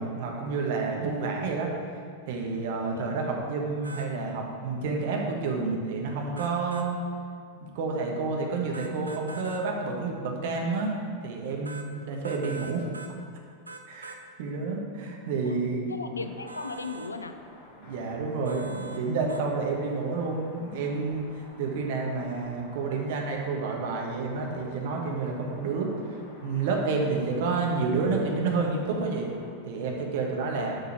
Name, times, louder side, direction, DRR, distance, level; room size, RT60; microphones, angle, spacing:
voice 1, 0.0-1.7 2.3-7.0 7.5-10.9 11.2-12.9 13.9-16.0 17.8-25.9 26.4-29.3 29.6-30.7, right 4 dB, 50° right, 0 dB, 1.4 m, -29 dB
sound 1, 3.8-4.1 6.4-6.9 8.7-9.6 11.7-11.9 12.2-13.1 13.7-14.2 16.5-17.1 18.5-19.0 19.3-19.4, right 3 dB, 80° right, 0.6 m, -43 dB
voice 2, 15.9-17.4 30.5-30.8, left 3 dB, 75° left, 8 dB, 0.5 m, -36 dB
sound 2, 16.1-29.5, left 2 dB, 45° left, 1.7 m, -51 dB
7.6 x 5.5 x 6.4 m, 2.1 s
figure-of-eight pair, 90°, 0 cm